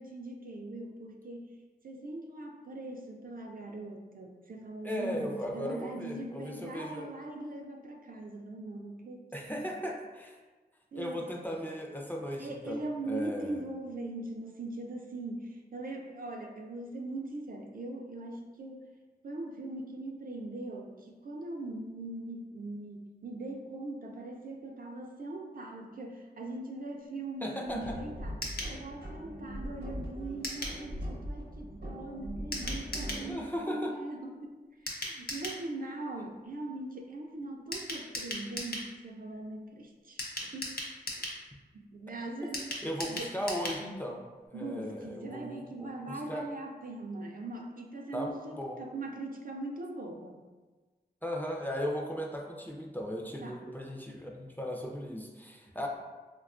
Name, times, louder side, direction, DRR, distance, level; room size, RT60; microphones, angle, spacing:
voice 1, 0.0-1.5 1.8-9.3 9.7-9.8 10.9-11.4 12.4-18.8 19.2-34.5 34.8-40.7 41.1-41.4 41.7-42.7 43.1-43.3 44.5-50.4 53.4-53.6, right 2 dB, 60° right, 2 dB, 0.4 m, -41 dB
voice 2, 4.8-7.1 9.3-10.4 10.9-13.6 27.4-28.0 33.2-33.9 42.8-44.2 44.5-45.5 45.8-46.5 48.1-48.8 51.2-55.9, equal, 10° left, -1 dB, 0.4 m, -37 dB
sound 1, 27.7-33.3, equal, 80° right, 0.8 m, -40 dB
sound 2, 28.4-28.7 30.4-30.8 32.5-33.2 34.9-35.6 37.7-38.9 40.2-41.4 42.5-43.8 44.1-44.2 44.5-44.6, left 1 dB, 65° left, 0.6 m, -37 dB
3.4 x 2.2 x 2.4 m, 1.3 s
wide cardioid pair, 60°, 17 cm